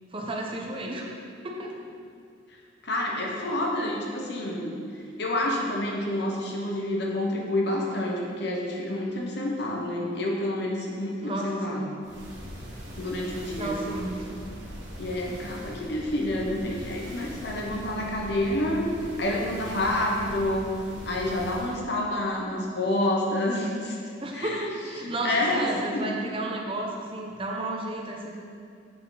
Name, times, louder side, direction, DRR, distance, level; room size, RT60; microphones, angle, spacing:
voice 1, 0.1-1.2 1.4-1.7 11.2-12.0 13.6-14.4 24.2-28.4, right 1 dB, 30° right, 0 dB, 0.9 m, -33 dB
voice 2, 2.8-4.7 5.2-11.8 13.0-13.8 15.0-18.9 19.2-20.7 21.0-24.0 24.3-24.6 25.2-26.2, left 1 dB, 60° left, -1 dB, 1.2 m, -28 dB
sound 1, 12.0-21.8, equal, 75° right, 1.7 m, -41 dB
7.7 x 6.1 x 4.0 m, 2.3 s
head